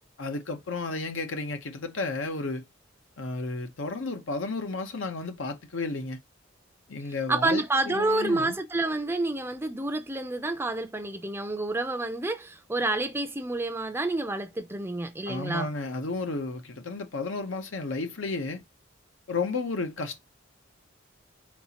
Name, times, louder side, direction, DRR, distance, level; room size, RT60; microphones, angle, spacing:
voice 1, 0.2-2.6 3.2-6.2 6.9-8.6 15.3-18.6 19.3-20.2, left 3 dB, 80° left, 0.8 m, -32 dB
voice 2, 7.1-15.7, right 2 dB, 10° right, 0.5 m, -29 dB
4.3 x 4.2 x 2.8 m
head